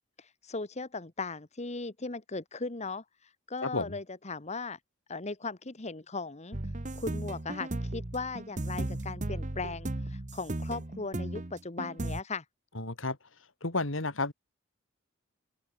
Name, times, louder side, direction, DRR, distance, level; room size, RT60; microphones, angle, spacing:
voice 1, 0.0-3.0 3.5-4.8 5.1-6.6 6.9-12.4, left 3 dB, 35° left, 1.4 m, -38 dB
voice 2, 3.6-4.0 12.8-13.2 13.6-14.3, left 3 dB, 70° left, 2.8 m, -31 dB
sound 1, 6.5-12.2, right 1 dB, 40° right, 1.1 m, -36 dB
open air
head